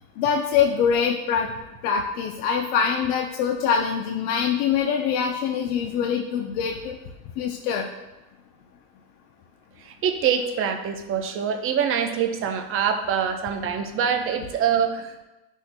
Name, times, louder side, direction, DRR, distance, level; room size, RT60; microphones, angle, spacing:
voice 1, 0.2-1.5 1.8-7.0 7.4-7.9, left 7 dB, 50° left, 1 dB, 0.8 m, -24 dB
voice 2, 9.8-15.2, right 7 dB, 30° right, 5 dB, 0.7 m, -25 dB
11.5 x 6.3 x 2.2 m, 0.99 s
supercardioid pair, 140°, 46 cm